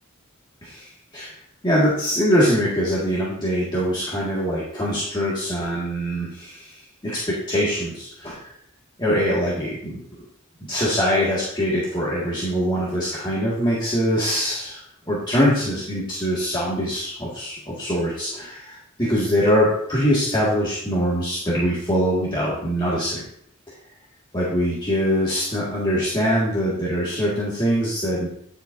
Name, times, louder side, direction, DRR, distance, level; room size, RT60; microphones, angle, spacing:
voice 1, 1.6-8.5 9.0-10.3 10.7-23.2 23.7-23.8 24.3-28.3, equal, 20° left, -8 dB, 2.0 m, -23 dB
10.0 x 7.6 x 2.7 m, 0.67 s
head